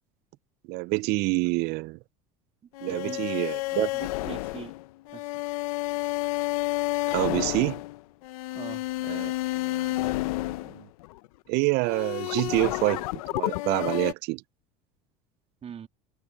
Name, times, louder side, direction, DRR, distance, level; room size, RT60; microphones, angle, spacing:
voice 1, 0.7-2.0 2.8-3.9 7.1-7.8 9.1-10.2 11.5-13.0 13.3-14.4, right 24 dB, 65° right, 0.5 m, -27 dB
sound 1, 2.7-11.3 11.8-14.1, left 20 dB, 85° left, 0.6 m, -30 dB
voice 2, 2.9-3.3 3.9-4.7 5.1-5.4 8.5-8.9 15.6-15.9, right 8 dB, 35° right, 2.9 m, -41 dB
supercardioid pair, 105°, 18 cm